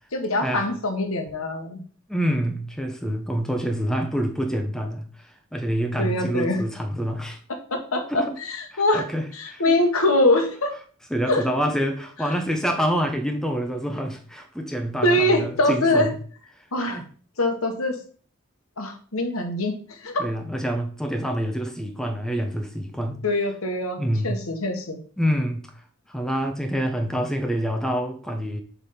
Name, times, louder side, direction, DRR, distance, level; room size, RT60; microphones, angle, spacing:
voice 1, 0.1-1.8 6.0-6.6 7.5-9.1 9.3-10.7 11.3-11.4 15.0-16.1 16.7-17.0 17.4-18.0 18.8-20.2 23.2-25.0, left 1 dB, 90° left, 1.4 m, -23 dB
voice 2, 2.1-7.4 8.1-8.4 8.7-9.8 11.1-16.1 16.6-17.1 20.2-23.2 24.0-24.4 25.2-25.7 26.1-28.6, equal, 5° left, 0.8 m, -27 dB
7.2 x 3.7 x 5.7 m
head